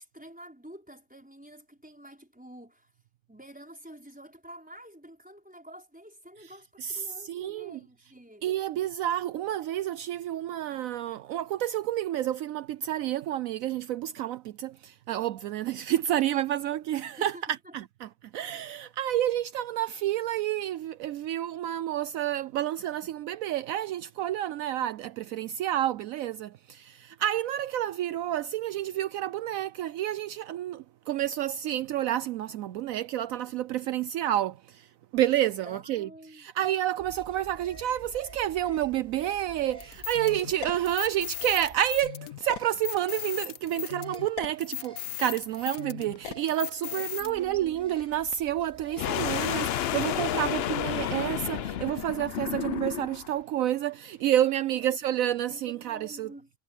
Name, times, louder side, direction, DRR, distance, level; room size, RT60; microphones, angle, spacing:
voice 1, 0.0-2.9 3.3-8.4 17.2-17.7 35.6-36.5 46.8-47.8 54.6-54.9 55.5-56.5, right 1 dB, 5° right, 5.0 m, -49 dB
voice 2, 6.8-7.8 8.4-56.3, right 12 dB, 75° right, 1.0 m, -29 dB
sound 1, 37.0-52.3, right 2 dB, 35° right, 7.9 m, -51 dB
sound 2, 39.8-47.3, left 13 dB, 80° left, 1.3 m, -37 dB
sound 3, 49.0-53.3, left 11 dB, 60° left, 0.7 m, -31 dB
omnidirectional pair, 1.5 m